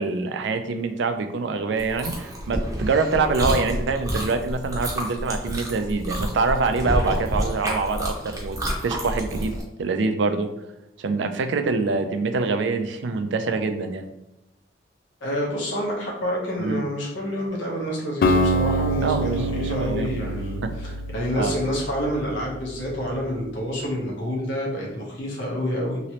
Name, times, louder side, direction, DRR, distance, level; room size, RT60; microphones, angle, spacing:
voice 1, 0.0-8.6 8.8-10.5 11.0-14.1 16.6-16.8 19.0-20.1 20.6-20.7 21.3-21.6, right 4 dB, 75° right, 8 dB, 0.4 m, -25 dB
Chewing mastication, 1.8-9.6, equal, 20° right, 0.6 m, -29 dB
voice 2, 15.2-26.0, equal, 85° left, -3 dB, 1.0 m, -28 dB
Acoustic guitar, 18.2-22.3, equal, 50° left, 0.3 m, -25 dB
3.0 x 2.9 x 2.9 m, 0.89 s
head